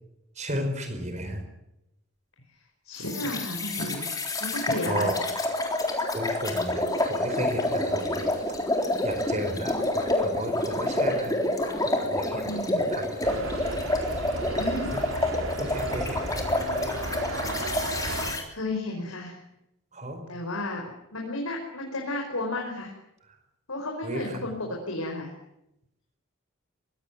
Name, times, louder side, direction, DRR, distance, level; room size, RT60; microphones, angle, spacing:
voice 1, 0.4-1.4 3.2-3.3 4.9-5.2 5.7-5.9 6.1-8.3 9.0-11.3 11.9-13.6 14.9-15.1 15.6-16.5 19.9-20.2 24.0-24.4, equal, 30° right, 6 dB, 4.9 m, -34 dB
voice 2, 2.8-4.1 4.4-5.1 12.4-12.9 14.6-14.9 18.5-19.4 20.3-20.8 21.1-22.9 23.7-25.3, left 1 dB, 80° left, 0 dB, 5.1 m, -32 dB
sound 1, 3.0-18.4, left 1 dB, 15° left, 3.7 m, -28 dB
sound 2, 13.2-18.3, right 2 dB, 70° right, 4.1 m, -34 dB
23.0 x 17.5 x 9.4 m, 0.84 s
head